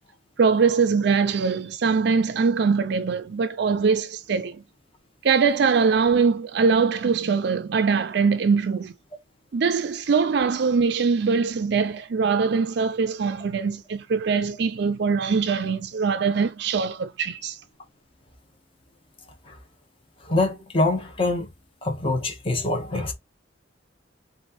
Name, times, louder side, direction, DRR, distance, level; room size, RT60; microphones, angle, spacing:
voice 1, 0.4-4.6 5.2-8.9 9.5-17.6, right 5 dB, 60° right, 0.4 m, -22 dB
voice 2, 20.2-21.5 21.8-23.1, left 2 dB, 30° left, 1.1 m, -25 dB
4.3 x 2.6 x 4.0 m
head